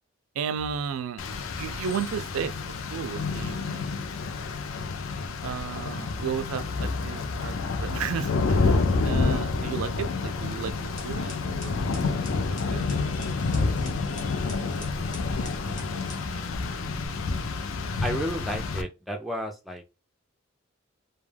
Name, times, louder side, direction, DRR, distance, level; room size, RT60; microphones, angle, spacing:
voice 1, 0.3-2.6 2.9-3.9 5.4-10.7 11.0-15.2 15.6-16.5, right 7 dB, 90° right, 0.3 m, -35 dB
Rain, 1.2-18.8, left 3 dB, 70° left, 0.4 m, -29 dB
sound 1, 10.8-17.1, left 1 dB, 35° left, 0.9 m, -43 dB
voice 2, 18.0-19.8, equal, ahead, 0.3 m, -32 dB
2.2 x 2.1 x 3.2 m
head